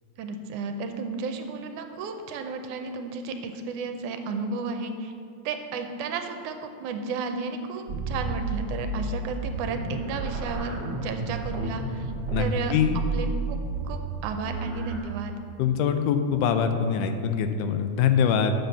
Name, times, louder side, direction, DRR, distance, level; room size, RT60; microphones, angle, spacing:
voice 1, 0.2-5.1 5.5-12.1 12.4-12.7 13.1-13.6 13.8-15.3, right 4 dB, 80° right, 6 dB, 2.0 m, -33 dB
sound 1, 7.9-15.0, right 3 dB, 45° right, 1.7 m, -31 dB
voice 2, 12.3-13.1 15.6-18.5, left 7 dB, 85° left, 8 dB, 2.1 m, -24 dB
8.0 x 6.8 x 6.8 m, 2.4 s
omnidirectional pair, 3.6 m